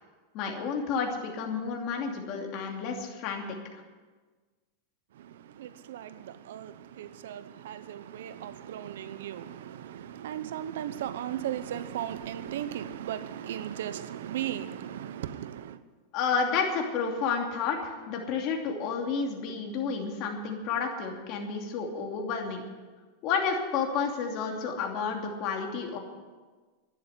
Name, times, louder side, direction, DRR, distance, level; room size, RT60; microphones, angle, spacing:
voice 1, 0.3-3.4 16.1-22.6 23.2-26.0, left 5 dB, 40° left, 2.7 m, -31 dB
voice 2, 5.1-15.8, right 11 dB, 80° right, 0.8 m, -37 dB
11.5 x 10.5 x 9.9 m
supercardioid pair, 155°, 0 cm